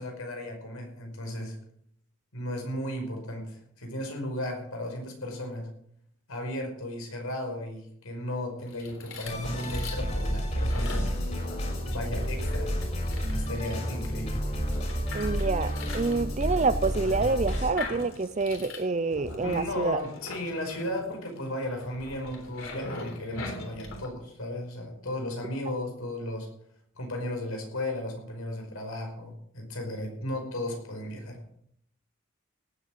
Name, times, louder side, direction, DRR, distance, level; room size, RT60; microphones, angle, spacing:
voice 1, 0.0-1.6 2.3-5.7 6.3-11.1 11.9-12.7 13.3-14.4 19.4-26.5 27.0-31.4, left 1 dB, 85° left, 2 dB, 5.3 m, -35 dB
sound 1, 8.6-24.1, left 3 dB, 65° left, 3.6 m, -42 dB
sound 2, 9.3-17.7, equal, 35° left, 4.1 m, -30 dB
voice 2, 15.1-20.0, right 3 dB, 35° right, 13 dB, 0.5 m, -27 dB
18.0 x 8.5 x 6.6 m, 0.69 s
head